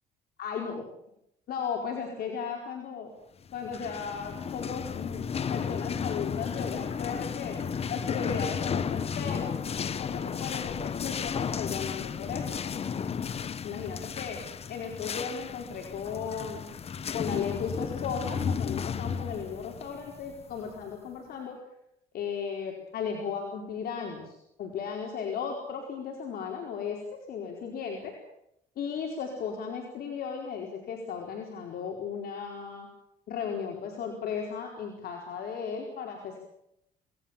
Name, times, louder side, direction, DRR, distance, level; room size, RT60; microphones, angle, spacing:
voice 1, 0.4-0.8 1.5-3.1 3.5-7.6 7.9-9.6 10.0-12.6 13.6-14.4 14.7-16.7 17.1-21.6 22.1-27.0 27.3-28.1 28.8-32.9 33.3-36.4, left 6 dB, 65° left, 1 dB, 4.7 m, -35 dB
sound 1, 3.5-21.0, left 7 dB, 35° left, 1.0 m, -34 dB
27.0 x 19.5 x 7.4 m, 0.81 s
cardioid pair, 110°, 17 cm